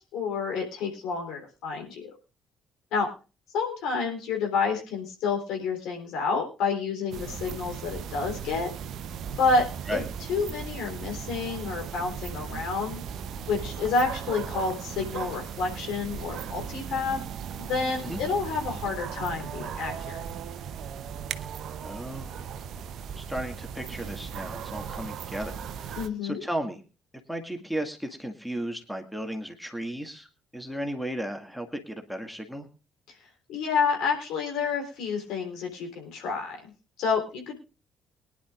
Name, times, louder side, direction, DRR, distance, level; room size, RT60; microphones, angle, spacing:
voice 1, 0.1-2.1 2.9-3.1 3.5-8.7 9.4-10.0 10.3-13.0 13.5-17.2 17.6-20.2 26.0-26.4 33.5-36.7 37.0-37.6, left 4 dB, 60° left, 2 dB, 3.5 m, -29 dB
sound 1, 7.1-26.1, right 7 dB, 55° right, 0.8 m, -37 dB
voice 2, 21.8-22.6 23.2-26.8 27.3-30.3 30.5-32.7, right 1 dB, ahead, 5 dB, 2.0 m, -35 dB
23.0 x 10.5 x 2.5 m, 0.33 s
figure-of-eight pair, 45°, 0 cm